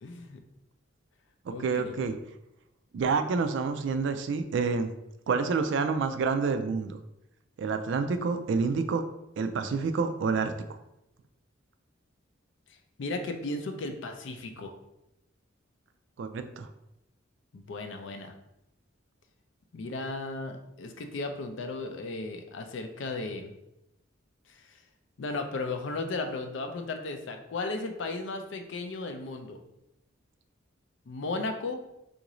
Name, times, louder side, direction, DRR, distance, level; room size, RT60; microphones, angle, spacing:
voice 1, 0.0-0.4 1.5-1.9 13.0-14.8 17.5-18.3 19.7-23.5 24.5-24.8 25.2-29.6 31.1-31.8, left 3 dB, 70° left, 6 dB, 0.4 m, -35 dB
voice 2, 1.5-2.1 2.9-4.9 5.3-7.0 7.6-9.0 9.4-10.5 16.2-16.7, right 4 dB, 65° right, 8 dB, 0.3 m, -28 dB
3.7 x 2.5 x 3.0 m, 0.86 s
head